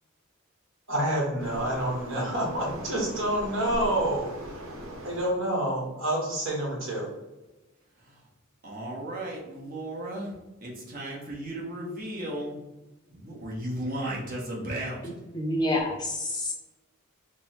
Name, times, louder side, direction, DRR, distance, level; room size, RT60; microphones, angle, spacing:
voice 1, 0.9-4.3 5.0-7.1, right 1 dB, 60° right, -2 dB, 1.3 m, -28 dB
Waves surf, 1.4-5.4, equal, 85° right, 0.9 m, -40 dB
voice 2, 8.6-10.3 10.6-12.6 13.1-15.0, right 1 dB, 40° right, -3 dB, 1.0 m, -35 dB
voice 3, 15.3-16.5, left 1 dB, 20° left, -1 dB, 0.6 m, -28 dB
3.4 x 2.1 x 4.3 m, 1.1 s
head